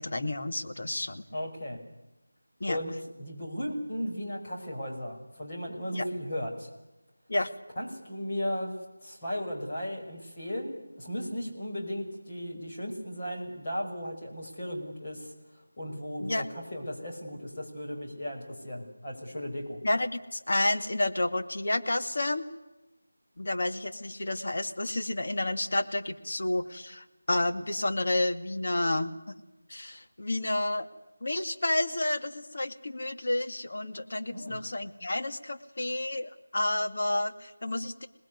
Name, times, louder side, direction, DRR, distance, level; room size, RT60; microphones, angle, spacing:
voice 1, 0.0-1.2 2.6-2.8 5.9-6.1 7.3-7.5 16.2-16.4 19.8-22.5 23.4-29.3 29.7-30.9 31.2-38.1, left 2 dB, 50° left, 5 dB, 2.2 m, -30 dB
voice 2, 1.3-1.8 2.7-6.7 7.8-8.7 9.0-15.3 15.8-19.8 34.3-34.6, equal, 25° left, -3 dB, 5.8 m, -36 dB
27.0 x 20.0 x 9.7 m, 1.0 s
figure-of-eight pair, 175°, 0 cm